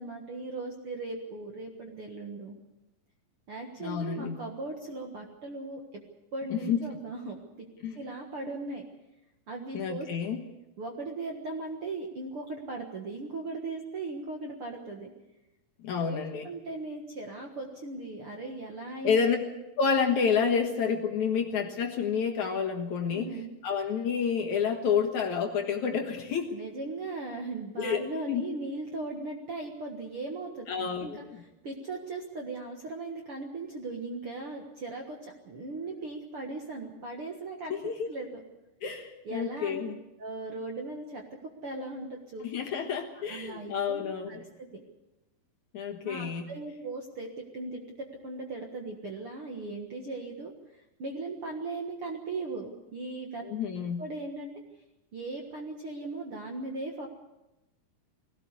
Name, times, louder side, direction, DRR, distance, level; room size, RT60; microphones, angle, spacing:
voice 1, 0.0-2.6 3.5-6.0 6.3-7.7 8.0-8.8 9.5-10.1 10.8-15.1 16.0-19.2 23.1-23.5 26.5-37.8 38.1-38.4 39.3-39.8 40.2-41.2 41.6-42.5 43.1-44.8 46.0-53.4 54.0-54.5 55.1-57.1, right 2 dB, 50° right, 1 dB, 1.7 m, -38 dB
voice 2, 3.8-4.4 6.5-6.8 7.8-8.0 9.7-10.4 15.8-16.5 19.0-19.4 19.8-23.4 23.6-26.6 27.8-28.4 30.7-31.4 37.7-38.1 38.8-40.0 42.4-44.5 45.7-46.5 53.4-54.0, left 6 dB, 60° left, 2 dB, 2.4 m, -29 dB
20.5 x 17.0 x 8.2 m, 0.95 s
omnidirectional pair, 4.6 m